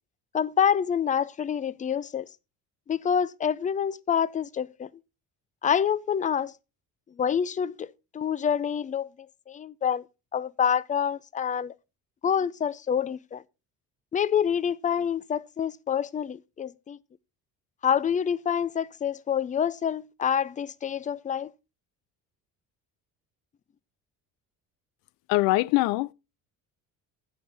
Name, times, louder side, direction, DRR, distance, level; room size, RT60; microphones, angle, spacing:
voice 1, 0.3-2.3 2.9-4.9 5.6-6.5 7.2-9.1 9.5-10.0 10.3-11.7 12.2-13.4 14.1-17.0 17.8-21.5, left 8 dB, 25° left, 0.4 m, -27 dB
voice 2, 25.3-26.1, left 20 dB, 85° left, 0.5 m, -23 dB
16.0 x 5.5 x 3.3 m
cardioid pair, 125°, 34 cm